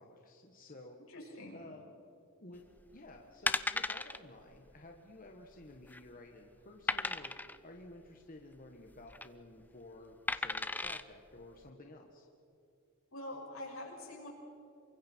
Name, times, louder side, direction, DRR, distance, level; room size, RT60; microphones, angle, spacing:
voice 1, 0.0-1.0 1.5-1.9 2.4-2.6 2.9-12.3, left 2 dB, 40° left, 1 dB, 1.7 m, -53 dB
voice 2, 1.1-1.6 13.1-14.3, left 1 dB, 85° left, -2 dB, 6.5 m, -45 dB
sound 1, 2.8-3.0 3.5-4.2 4.5-4.7 4.9-5.0 5.6-6.1 6.9-7.6 8.9-9.3 10.3-11.0 11.6-11.7, left 2 dB, 10° left, 0.5 m, -35 dB
28.0 x 24.5 x 4.7 m, 2.5 s
head